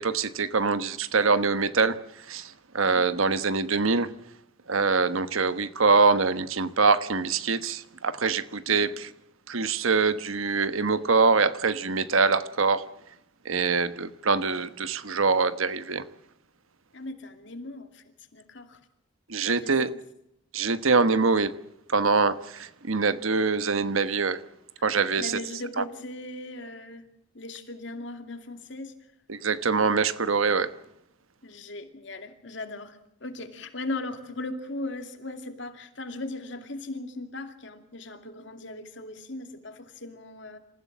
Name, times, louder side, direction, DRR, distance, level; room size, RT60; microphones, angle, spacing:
voice 1, 0.0-2.0 2.3-4.1 4.7-9.1 9.5-12.8 13.4-16.0 19.3-19.9 20.5-21.5 21.9-24.4 24.8-25.4 25.8-25.9 29.3-30.7, right 4 dB, 85° right, 1.2 m, -24 dB
voice 2, 16.9-18.8 19.5-20.0 25.2-27.1 27.3-28.9 31.4-40.6, left 2 dB, 60° left, 2.5 m, -38 dB
28.0 x 15.5 x 7.4 m
head